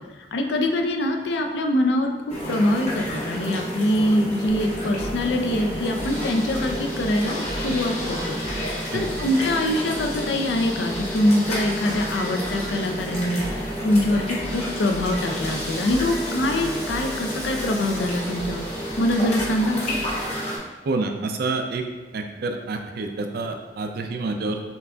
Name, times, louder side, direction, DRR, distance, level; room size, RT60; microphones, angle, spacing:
voice 1, 0.3-7.4 7.6-8.4 8.9-18.6 19.0-20.0, left 1 dB, 70° left, 4 dB, 0.4 m, -24 dB
sound 1, 2.3-20.6, equal, 35° left, 1.2 m, -30 dB
sound 2, 4.5-20.3, equal, 75° right, 1.0 m, -38 dB
Water tap faucet / Sink (filling or washing), 15.2-19.1 19.8-19.9, left 1 dB, 5° left, 0.7 m, -40 dB
voice 2, 20.8-21.8 22.1-24.6, right 3 dB, 60° right, 5 dB, 0.4 m, -28 dB
7.0 x 2.5 x 2.3 m, 1.3 s
head